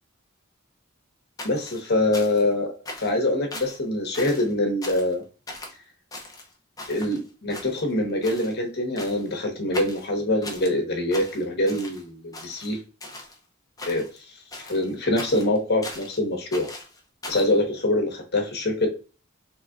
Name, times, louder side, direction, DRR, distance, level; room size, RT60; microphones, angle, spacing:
voice 1, 1.4-2.7 3.0-5.2 6.9-12.8 13.8-14.0 14.7-16.7 17.3-18.9, left 1 dB, 55° left, 2 dB, 1.2 m, -24 dB
sound 1, 1.4-2.5 2.9-3.2 3.5-3.8 4.1-4.5 4.8-5.2 5.5-5.8 6.1-7.2 7.5-8.0 8.2-8.5 9.0-9.3 9.7-10.7 11.1-12.0 12.3-13.4 13.8-14.2 14.5-16.2 16.5-17.5, left 2 dB, 20° left, 0.8 m, -39 dB
4.1 x 3.2 x 2.4 m, 0.35 s
head